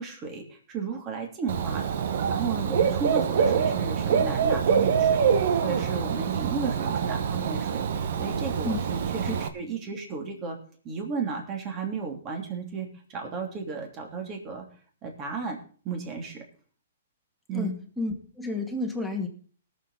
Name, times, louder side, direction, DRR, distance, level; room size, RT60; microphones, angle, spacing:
voice 1, 0.0-1.8 2.3-10.6 10.8-14.6 15.0-15.6 15.8-16.4 17.5-17.7, right 5 dB, 25° right, 2 dB, 3.0 m, -34 dB
Dog / Bird, 1.5-9.5, right 7 dB, 60° right, 1.1 m, -25 dB
voice 2, 17.5-19.3, left 2 dB, ahead, -1 dB, 2.2 m, -31 dB
19.0 x 7.3 x 4.2 m, 0.43 s
hypercardioid pair, 145°, 0 cm